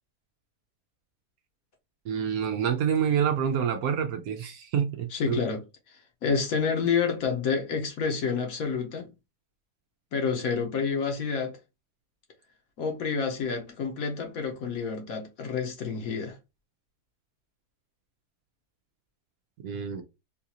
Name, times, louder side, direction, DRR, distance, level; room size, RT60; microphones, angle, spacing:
voice 1, 2.1-5.4 19.6-20.0, right 8 dB, 70° right, 1.0 m, -27 dB
voice 2, 5.1-9.1 10.1-11.6 12.8-16.4, left 5 dB, 60° left, 1.2 m, -29 dB
3.9 x 2.4 x 2.8 m
omnidirectional pair, 1.8 m